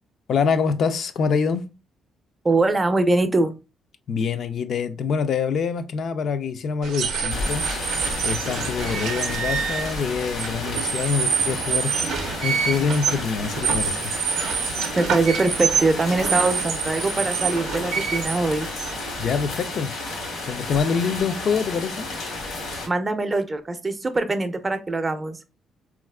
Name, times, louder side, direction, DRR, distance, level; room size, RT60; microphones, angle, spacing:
voice 1, 0.3-1.7 4.1-7.7 8.2-14.1 19.2-19.9 20.5-22.1, left 6 dB, 65° left, 0.3 m, -25 dB
voice 2, 2.4-3.5 15.0-18.7 22.9-25.4, right 2 dB, 25° right, 0.5 m, -22 dB
sound 1, 6.8-19.5, right 6 dB, 80° right, 0.5 m, -27 dB
sound 2, 7.3-22.9, left 2 dB, 90° left, 1.1 m, -32 dB
3.5 x 2.4 x 2.2 m
cardioid pair, 90°, 0 cm